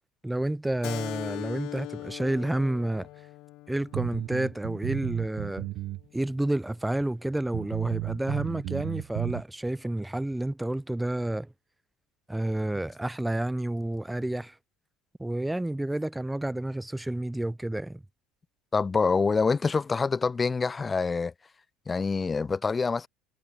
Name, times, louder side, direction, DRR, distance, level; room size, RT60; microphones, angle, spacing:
voice 1, 0.2-3.1 3.7-5.7 6.1-11.5 12.3-14.6 15.2-18.0, right 1 dB, 5° right, 2.3 m, -30 dB
Keyboard (musical), 0.8-6.0, left 19 dB, 55° left, 2.3 m, -41 dB
sound 1, 3.9-6.0 6.3-6.4 7.0-7.1 7.5-9.4, right 17 dB, 55° right, 1.3 m, -33 dB
voice 2, 18.7-21.3 21.9-23.1, left 4 dB, 15° left, 0.5 m, -26 dB
cardioid pair, 150°, 0 cm